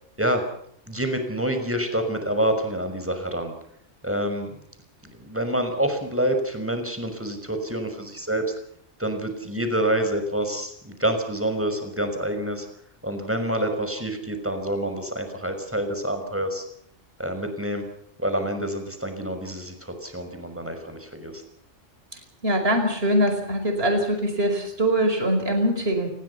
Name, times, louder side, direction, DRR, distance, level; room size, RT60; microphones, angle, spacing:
voice 1, 0.9-3.5 4.0-4.5 5.0-8.5 9.0-12.7 13.0-16.6 17.2-17.9 18.2-21.4, right 1 dB, 10° right, 7 dB, 5.8 m, -27 dB
voice 2, 22.4-26.1, equal, 50° right, 6 dB, 5.5 m, -22 dB
28.5 x 20.5 x 5.7 m, 0.69 s
omnidirectional pair, 1.3 m